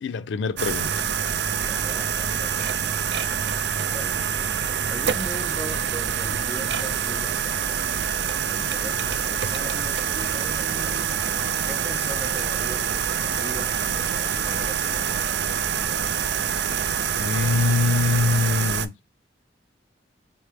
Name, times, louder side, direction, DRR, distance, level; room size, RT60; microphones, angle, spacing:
voice 1, 0.0-1.1 17.2-18.9, left 3 dB, 90° left, 0.4 m, -23 dB
sound 1, 0.6-18.9, right 8 dB, 70° right, 0.4 m, -26 dB
voice 2, 1.6-2.8 3.1-3.4 3.9-4.3 4.9-7.9 8.5-11.2 11.6-15.3, right 1 dB, 5° right, 1.1 m, -40 dB
5.6 x 2.0 x 3.2 m
head